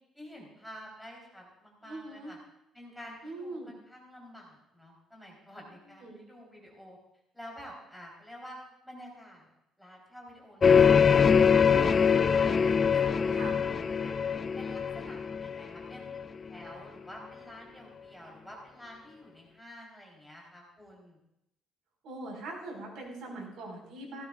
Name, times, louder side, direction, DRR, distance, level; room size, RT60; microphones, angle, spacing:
voice 1, 0.1-2.4 2.7-7.0 7.3-8.6 8.8-9.5 9.8-12.5 12.9-14.1 14.6-16.0 16.4-21.2, equal, 5° left, -3 dB, 3.9 m, -49 dB
voice 2, 1.8-2.3 3.2-3.7 6.0-6.2 13.3-13.6 22.0-24.2, right 2 dB, 70° right, -1 dB, 5.0 m, -41 dB
sound 1, 10.6-16.2, left 6 dB, 30° left, 0.4 m, -23 dB
17.5 x 17.0 x 2.5 m, 0.83 s
cardioid pair, 150°, 0 cm